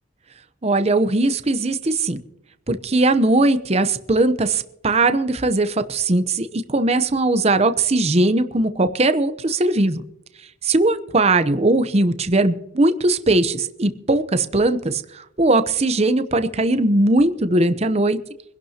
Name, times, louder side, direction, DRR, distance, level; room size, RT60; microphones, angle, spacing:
voice 1, 0.6-2.2 2.7-10.0 10.6-18.2, right 2 dB, 30° right, 10 dB, 0.7 m, -19 dB
24.0 x 11.5 x 2.8 m, 0.80 s
head